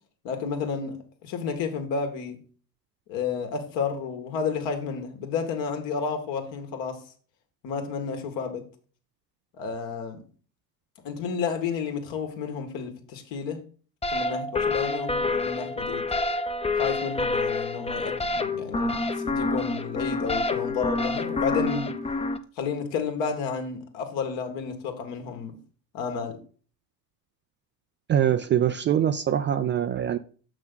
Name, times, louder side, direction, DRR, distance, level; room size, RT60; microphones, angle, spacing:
voice 1, 0.2-2.4 3.1-7.0 7.6-8.7 9.5-10.2 11.0-13.6 14.1-16.0 16.8-22.0 22.6-25.6 25.9-26.4, left 6 dB, 60° left, 2.1 m, -31 dB
sound 1, 14.0-22.4, left 2 dB, 10° left, 0.7 m, -28 dB
voice 2, 28.1-30.2, right 9 dB, 25° right, 0.4 m, -23 dB
6.9 x 6.0 x 3.9 m
hypercardioid pair, 75°, 50 cm